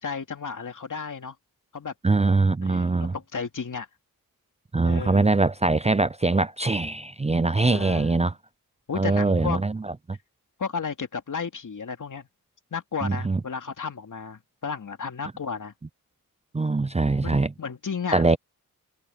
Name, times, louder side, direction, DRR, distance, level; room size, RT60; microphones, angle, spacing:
voice 1, 0.0-1.4 1.7-1.9 2.6-3.9 4.8-5.3 7.7-8.2 8.9-9.6 10.6-12.3 12.7-15.7 17.2-18.4, left 5 dB, 55° left, 3.0 m, -33 dB
voice 2, 2.0-3.1 4.7-8.3 8.9-10.2 13.0-13.4 16.5-17.5 18.1-18.4, right 3 dB, 20° right, 0.6 m, -22 dB
cardioid pair, 55°, 36 cm